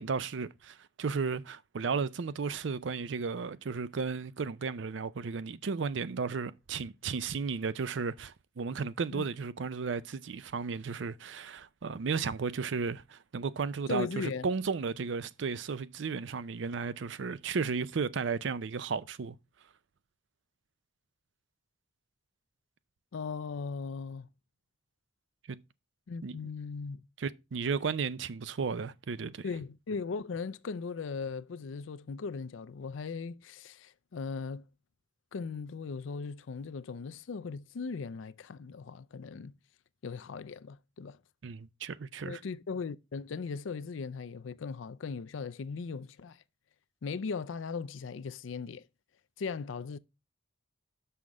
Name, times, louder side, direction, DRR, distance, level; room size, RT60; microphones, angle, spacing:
voice 1, 0.0-19.3 25.5-25.6 26.2-26.4 27.2-29.4 41.4-42.4, right 5 dB, 70° right, 0.5 m, -34 dB
voice 2, 13.9-14.5 23.1-24.3 26.1-27.0 29.4-34.6 35.3-39.6 40.0-41.2 42.2-46.4 47.0-48.8 49.4-50.0, left 5 dB, 85° left, 0.4 m, -38 dB
6.4 x 5.6 x 4.6 m
head